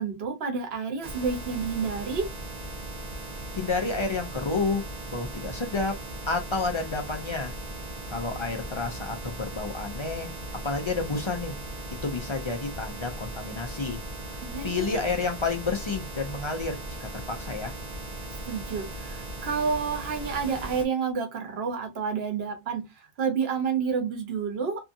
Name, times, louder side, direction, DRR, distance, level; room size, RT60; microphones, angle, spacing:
voice 1, 0.0-2.3 14.4-15.0 18.4-24.9, right 5 dB, 80° right, 1.0 m, -29 dB
sound 1, 1.0-20.9, right 1 dB, 45° right, 0.7 m, -38 dB
voice 2, 3.5-6.0 6.3-7.5 8.1-10.3 10.6-11.6 12.0-14.0 14.3-17.7, left 4 dB, 40° left, 0.5 m, -30 dB
2.7 x 2.4 x 2.5 m
omnidirectional pair, 1.0 m